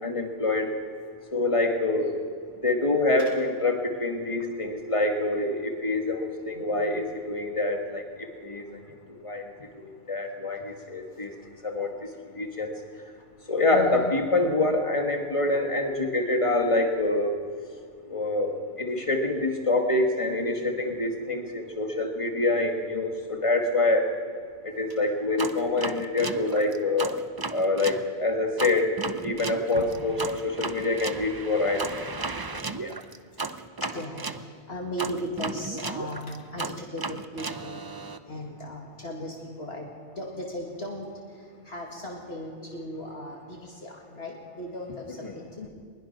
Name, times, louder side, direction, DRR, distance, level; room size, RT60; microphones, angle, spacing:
voice 1, 0.0-0.8 1.3-2.2 2.6-11.3 11.6-12.7 13.5-17.4 18.1-24.1 24.6-27.2 27.5-29.0 29.2-32.1 32.5-32.9 45.2-45.4, left 2 dB, 25° left, 3 dB, 2.1 m, -26 dB
voice 2, 13.7-14.1 27.4-27.8 29.5-29.8 33.9-37.9 38.3-39.9 40.2-41.1 41.7-45.7, left 1 dB, 55° left, -1 dB, 2.4 m, -37 dB
sound 1, 25.4-28.0 28.6-34.4 35.0-38.2, right 3 dB, 25° right, 0.5 m, -35 dB
22.0 x 21.0 x 6.0 m, 2.1 s
omnidirectional pair, 1.3 m